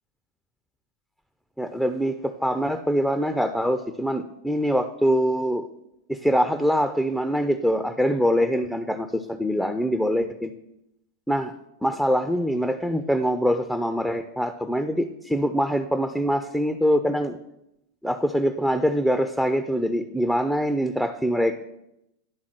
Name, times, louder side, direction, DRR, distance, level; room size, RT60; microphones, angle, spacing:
voice 1, 1.6-5.7 6.1-10.5 11.3-11.5 11.8-17.4 18.0-21.6, equal, ahead, 7 dB, 0.4 m, -24 dB
10.5 x 3.7 x 6.0 m, 0.84 s
figure-of-eight pair, 90°, 0 cm